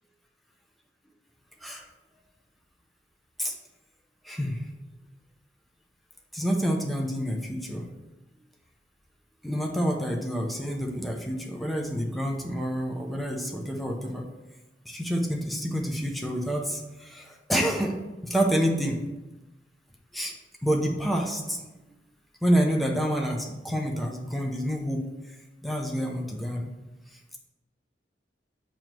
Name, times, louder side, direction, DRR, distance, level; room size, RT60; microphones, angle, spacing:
voice 1, 4.2-4.7 6.3-7.8 9.4-14.2 14.9-18.0 18.2-19.0 20.1-20.3 20.6-21.6 22.4-25.0 25.6-26.7, equal, ahead, 0 dB, 0.7 m, -28 dB
7.2 x 3.0 x 6.0 m, 1.1 s
head